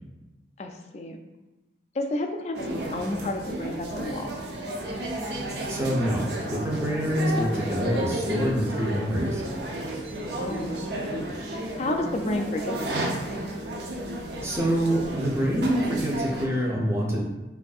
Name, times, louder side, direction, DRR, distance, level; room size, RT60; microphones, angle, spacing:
voice 1, 0.6-1.2 1.9-4.3 10.4-11.0 11.8-13.2, left 2 dB, 35° left, 5 dB, 0.3 m, -31 dB
sound 1, 2.5-16.5, right 1 dB, 70° right, 0.5 m, -32 dB
voice 2, 5.7-9.4 14.4-17.2, equal, 15° right, -3 dB, 0.6 m, -26 dB
4.9 x 2.6 x 2.4 m, 1.1 s
head